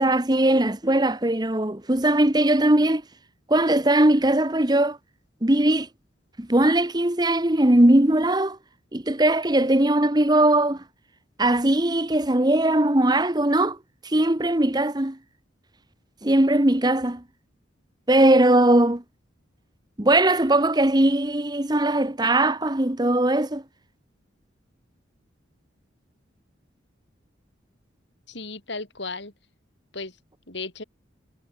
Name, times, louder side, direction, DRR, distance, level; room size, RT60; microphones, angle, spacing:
voice 1, 0.0-3.0 3.5-5.0 5.4-5.9 6.4-8.6 8.9-10.8 11.4-13.8 14.0-15.2 16.2-17.2 18.1-19.0 20.0-23.6, right 1 dB, 20° right, 1.1 m, -20 dB
voice 2, 28.3-29.3 29.9-30.1 30.5-30.8, left 3 dB, 65° left, 5.1 m, -34 dB
head